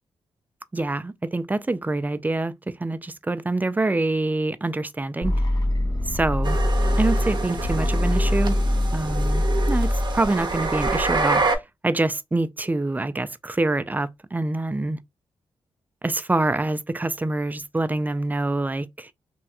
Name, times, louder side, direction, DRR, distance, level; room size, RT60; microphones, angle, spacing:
voice 1, 0.7-5.3 6.1-6.6 7.0-8.6 8.9-15.0 16.0-19.1, right 2 dB, 15° right, 0.4 m, -26 dB
sound 1, 5.2-11.2, left 1 dB, 40° left, 1.0 m, -23 dB
sound 2, 6.4-11.6, right 3 dB, 45° right, 0.8 m, -27 dB
3.3 x 2.8 x 2.3 m
cardioid pair, 65°, 10 cm